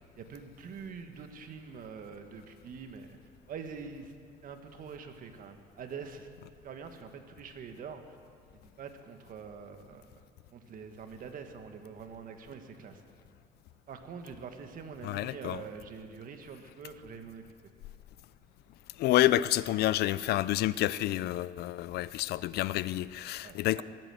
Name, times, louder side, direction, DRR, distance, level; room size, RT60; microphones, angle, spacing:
voice 1, 0.2-3.2 3.5-4.1 4.4-6.3 6.6-8.2 8.5-10.2 10.5-13.0 13.9-17.4 23.4-23.8, right 6 dB, 55° right, 1.6 m, -45 dB
voice 2, 15.0-15.6 19.0-23.8, left 14 dB, 70° left, 0.5 m, -29 dB
20.5 x 9.2 x 7.7 m
cardioid pair, 110°, 17 cm